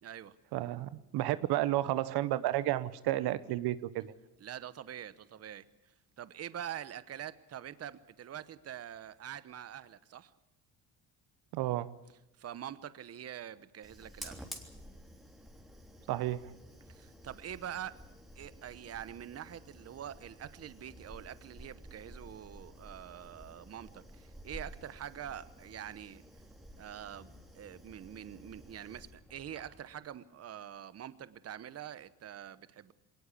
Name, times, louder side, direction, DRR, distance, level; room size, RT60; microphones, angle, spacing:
voice 1, 0.0-0.4 4.4-10.3 12.4-14.5 16.9-18.1 18.4-26.2 26.8-32.9, right 10 dB, 40° right, 16 dB, 0.9 m, -45 dB
voice 2, 0.5-4.1 11.5-11.9 16.1-16.5, right 15 dB, 75° right, 15 dB, 1.0 m, -32 dB
Fire, 13.8-29.9, equal, ahead, 3.3 m, -52 dB
21.5 x 18.5 x 8.4 m, 0.91 s
cardioid pair, 95°, 38 cm